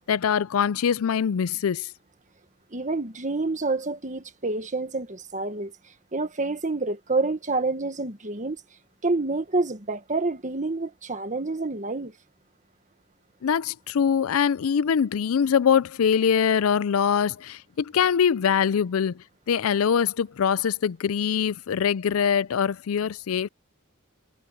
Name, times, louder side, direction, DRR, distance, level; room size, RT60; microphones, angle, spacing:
voice 1, 0.0-1.9 13.4-23.5, left 7 dB, 85° left, 0.4 m, -23 dB
voice 2, 2.7-5.7 6.1-8.6 9.0-12.1, right 3 dB, 35° right, 1.6 m, -28 dB
head